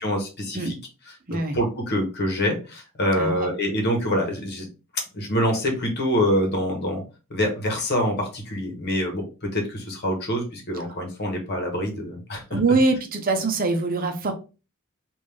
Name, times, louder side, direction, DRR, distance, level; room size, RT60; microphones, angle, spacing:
voice 1, 0.0-0.7 1.3-4.7 5.1-7.0 7.3-12.6, equal, 50° left, 1 dB, 1.2 m, -25 dB
voice 2, 3.2-3.5 12.5-14.3, right 3 dB, 40° right, 4 dB, 0.7 m, -23 dB
3.5 x 2.6 x 3.4 m, 0.32 s
head